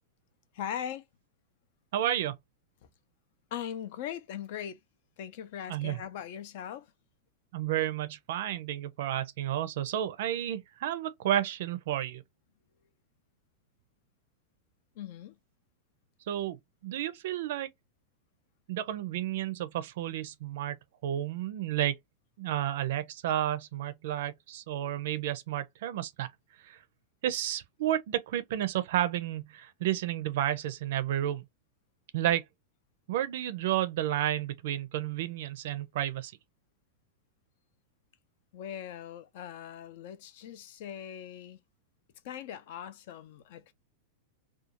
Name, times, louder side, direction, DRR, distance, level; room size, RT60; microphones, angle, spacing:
voice 1, 0.5-1.0 3.5-4.8 5.2-6.9 15.0-15.4 38.5-41.6 42.2-43.7, left 9 dB, 55° left, 0.5 m, -40 dB
voice 2, 1.9-2.4 5.7-6.0 7.5-12.2 16.3-16.6 16.8-17.7 18.7-20.8 21.0-21.9 22.4-26.3 26.6-26.8 27.2-31.5 32.1-32.4 33.1-36.3, right 12 dB, 65° right, 0.5 m, -31 dB
2.4 x 2.3 x 2.9 m
supercardioid pair, 155°, 0 cm